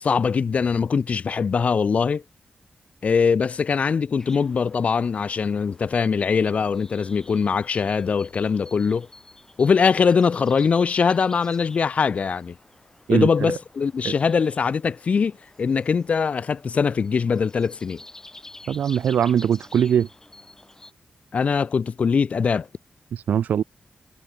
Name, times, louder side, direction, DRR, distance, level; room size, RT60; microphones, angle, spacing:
voice 1, 0.0-2.2 3.0-9.1 9.6-12.6 13.1-18.0 21.3-22.7, left 5 dB, 55° left, 0.4 m, -22 dB
sound 1, 4.2-20.9, left 2 dB, 20° left, 3.9 m, -49 dB
voice 2, 13.1-13.5 14.0-14.1 18.7-20.1 23.3-23.6, right 8 dB, 90° right, 0.3 m, -21 dB
cardioid pair, 85°, 3 cm